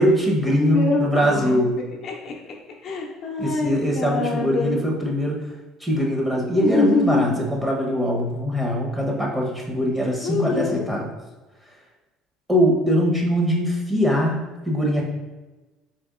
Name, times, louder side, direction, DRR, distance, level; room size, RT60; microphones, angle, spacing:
voice 1, 0.0-1.7 3.4-5.5 5.8-11.1 12.5-15.0, equal, 10° right, -1 dB, 1.0 m, -22 dB
voice 2, 0.6-2.3 2.8-4.8 6.6-7.4 10.2-10.9, left 3 dB, 55° left, -1 dB, 0.6 m, -24 dB
4.2 x 3.2 x 2.5 m, 1.2 s
supercardioid pair, 80°, 0 cm